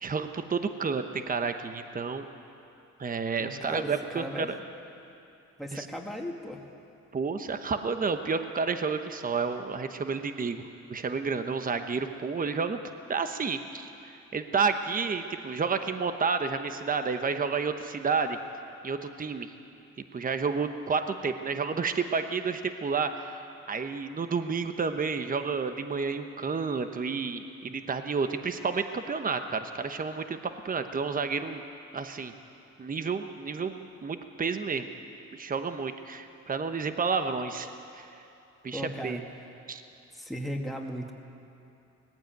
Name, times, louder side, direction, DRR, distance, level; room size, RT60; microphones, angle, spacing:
voice 1, 0.0-2.2 3.0-4.6 5.7-5.9 7.1-10.6 10.9-12.8 13.1-18.4 18.8-19.5 20.1-23.4 23.7-31.6 31.9-32.3 32.8-34.9 35.3-38.1 38.6-39.2 39.7-39.8, right 5 dB, 30° right, 8 dB, 1.0 m, -30 dB
voice 2, 3.4-4.5 5.6-6.6 38.7-39.2 40.1-41.1, equal, ahead, 0 dB, 2.3 m, -36 dB
19.0 x 15.0 x 9.2 m, 2.7 s
cardioid pair, 90°, 30 cm